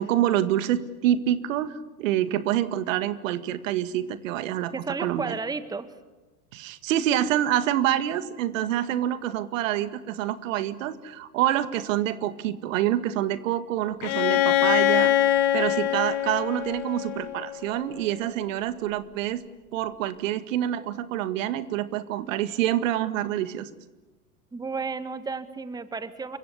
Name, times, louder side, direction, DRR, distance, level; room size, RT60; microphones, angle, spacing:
voice 1, 0.0-4.7 5.0-5.3 6.5-15.1 15.5-19.4 19.7-23.7, right 12 dB, 55° right, 12 dB, 2.0 m, -27 dB
voice 2, 4.7-5.9 24.5-26.4, right 4 dB, 10° right, 12 dB, 1.5 m, -32 dB
Bowed string instrument, 14.0-17.8, left 13 dB, 45° left, 2.7 m, -23 dB
29.5 x 24.0 x 8.4 m, 1.1 s
figure-of-eight pair, 95°, 46 cm